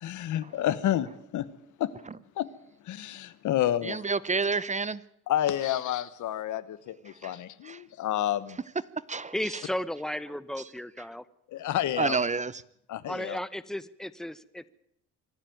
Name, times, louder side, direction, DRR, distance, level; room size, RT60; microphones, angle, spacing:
voice 1, 0.0-1.5 1.8-1.9 2.4-2.5 2.8-4.0 5.3-8.6 11.5-12.2 12.9-13.4, left 12 dB, 75° left, 15 dB, 1.2 m, -29 dB
voice 2, 3.9-5.0 7.7-7.8 9.1-9.3 12.0-12.5, right 4 dB, 25° right, 18 dB, 0.7 m, -28 dB
voice 3, 9.3-11.2 13.1-14.7, left 1 dB, ahead, 15 dB, 1.0 m, -34 dB
24.5 x 11.5 x 9.3 m, 0.76 s
cardioid pair, 90°, 30 cm